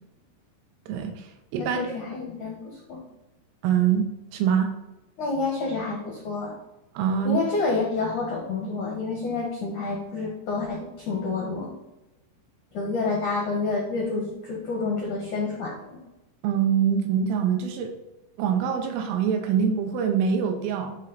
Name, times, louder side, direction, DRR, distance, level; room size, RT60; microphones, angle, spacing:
voice 1, 0.9-1.9 3.6-4.1 4.3-4.7 7.0-7.4 16.4-17.9 18.4-21.0, right 7 dB, 80° right, 5 dB, 3.6 m, -24 dB
voice 2, 1.6-3.0 5.2-6.5 7.2-11.7 12.7-16.0, left 3 dB, 75° left, -1 dB, 1.8 m, -29 dB
10.5 x 4.4 x 4.1 m, 0.99 s
omnidirectional pair, 5.8 m